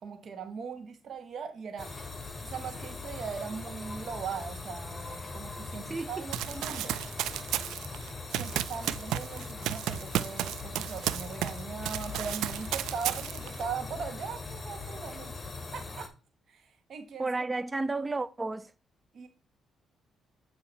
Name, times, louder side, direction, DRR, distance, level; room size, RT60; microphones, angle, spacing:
voice 1, 0.0-1.9 2.4-7.0 8.3-15.3 15.7-16.1 16.5-16.6 16.9-17.3 19.1-19.3, right 6 dB, 55° right, 1.2 m, -39 dB
sound 1, 1.8-16.1, left 3 dB, 30° left, 1.2 m, -41 dB
voice 2, 5.9-6.3 17.2-18.7, right 3 dB, 20° right, 0.4 m, -32 dB
Run, 6.3-11.6 11.9-13.6, right 12 dB, 85° right, 0.3 m, -33 dB
8.3 x 2.9 x 4.1 m
cardioid pair, 90°, 0 cm